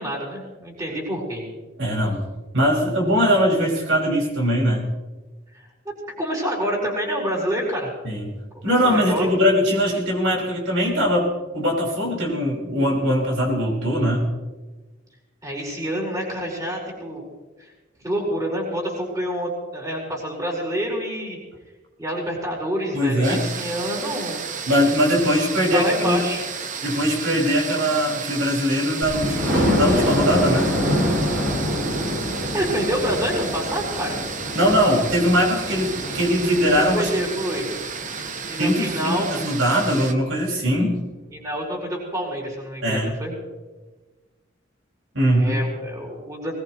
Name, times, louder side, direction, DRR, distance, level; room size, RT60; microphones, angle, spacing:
voice 1, 0.0-1.4 5.5-7.9 8.6-9.3 15.4-17.3 17.6-17.7 18.0-21.4 22.0-24.4 25.7-26.4 32.2-34.2 36.9-37.7 38.5-39.3 41.3-43.3 45.2-46.5, equal, 20° right, -3 dB, 4.4 m, -27 dB
voice 2, 1.8-2.2 2.5-4.9 8.0-8.3 8.6-14.2 22.9-23.5 24.7-26.2 26.8-30.7 34.5-37.1 38.6-41.0 42.8-43.1 45.1-45.5, equal, 85° right, -3 dB, 5.5 m, -21 dB
sound 1, 23.2-40.1, right 6 dB, 40° right, 1.0 m, -33 dB
Thunder, 29.0-38.7 39.3-39.4 39.8-39.9 40.2-40.3, equal, 60° right, 7.1 m, -26 dB
21.0 x 20.0 x 3.1 m, 1.2 s
head